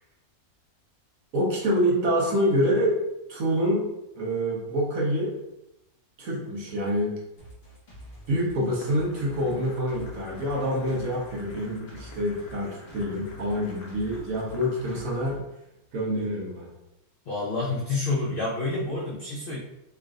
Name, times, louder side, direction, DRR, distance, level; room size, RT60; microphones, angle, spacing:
voice 1, 1.3-3.0 3.3-3.9 4.1-5.3 6.2-7.2 8.3-15.4 15.9-16.7, equal, 65° right, -4 dB, 1.4 m, -26 dB
sound 1, 7.4-15.4, right 1 dB, 35° left, 1.0 m, -48 dB
sound 2, 8.8-15.1, left 2 dB, 75° left, 1.2 m, -49 dB
voice 2, 17.3-19.6, left 3 dB, 55° left, -3 dB, 0.6 m, -28 dB
3.6 x 2.5 x 3.6 m, 0.88 s
omnidirectional pair, 1.6 m